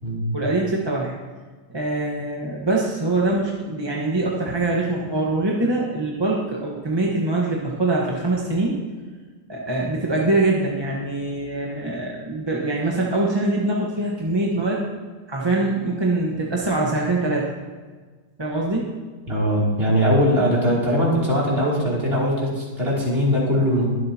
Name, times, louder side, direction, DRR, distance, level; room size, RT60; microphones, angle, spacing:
voice 1, 0.3-1.1 1.7-8.7 9.5-14.8 15.3-17.5 18.4-18.9, right 2 dB, 15° right, -3 dB, 1.1 m, -23 dB
voice 2, 19.3-23.8, equal, 30° right, -6 dB, 3.3 m, -20 dB
22.0 x 7.7 x 2.9 m, 1.4 s
omnidirectional pair, 2.0 m